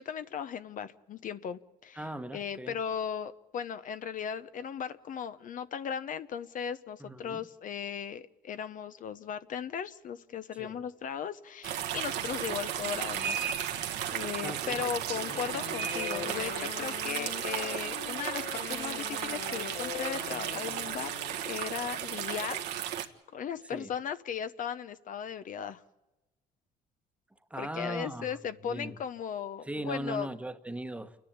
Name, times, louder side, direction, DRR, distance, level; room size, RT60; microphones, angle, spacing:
voice 1, 0.0-2.0 2.3-21.1 21.5-22.6 23.0-25.8 27.6-30.3, left 8 dB, 50° left, 0.9 m, -37 dB
voice 2, 1.9-2.8 7.0-7.4 10.6-10.8 14.4-14.8 23.7-23.9 27.5-29.0 29.6-31.2, right 1 dB, 5° right, 1.2 m, -39 dB
sound 1, 11.6-23.1, right 10 dB, 80° right, 1.6 m, -34 dB
Wind instrument woodwind instrument, 15.1-21.6, left 11 dB, 75° left, 1.0 m, -42 dB
29.0 x 10.5 x 8.7 m
cardioid pair, 110°, 17 cm